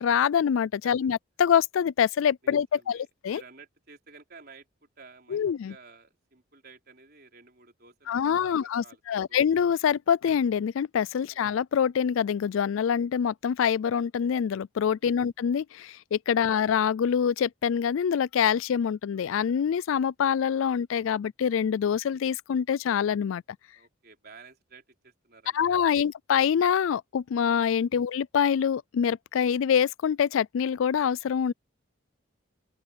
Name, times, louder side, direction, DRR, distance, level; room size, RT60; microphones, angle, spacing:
voice 1, 0.0-3.4 5.3-5.7 8.1-23.4 25.5-31.5, left 7 dB, 75° left, 0.3 m, -25 dB
voice 2, 2.4-9.4 11.2-11.4 15.0-15.3 16.4-16.6 23.7-26.0 27.9-28.1, right 4 dB, 50° right, 4.4 m, -54 dB
open air
head